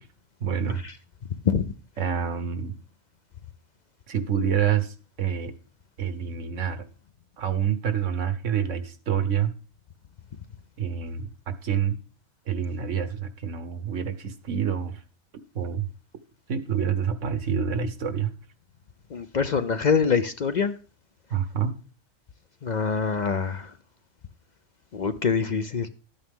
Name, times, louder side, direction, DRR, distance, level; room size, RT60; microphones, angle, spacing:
voice 1, 0.4-0.8 2.0-2.7 4.1-5.5 6.0-6.8 7.4-9.5 10.8-12.0 12.5-15.0 15.5-15.9 16.5-18.3 21.3-21.7, right 8 dB, 90° right, 11 dB, 1.4 m, -27 dB
voice 2, 19.1-20.8 22.6-23.7 24.9-25.9, left 6 dB, 50° left, 11 dB, 0.6 m, -24 dB
12.5 x 8.8 x 3.7 m, 0.35 s
omnidirectional pair, 1.2 m